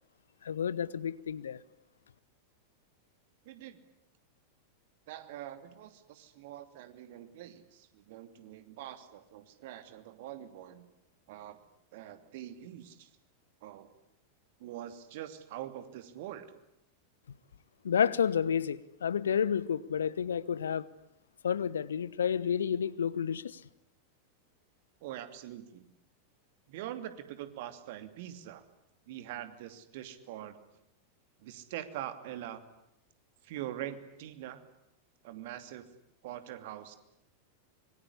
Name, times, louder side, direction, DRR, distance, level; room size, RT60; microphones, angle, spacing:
voice 1, 0.4-1.6 17.8-20.9 21.4-23.6, left 8 dB, 65° left, 1.0 m, -30 dB
voice 2, 3.4-3.8 5.1-10.9 11.3-11.6 11.9-13.1 13.6-13.9 14.6-16.6 25.0-25.9 26.7-28.6 29.1-30.6 31.4-32.6 33.4-34.6 35.2-35.8 36.2-37.0, right 12 dB, 50° right, 2.7 m, -44 dB
25.5 x 23.5 x 10.0 m
figure-of-eight pair, 90°, 0 cm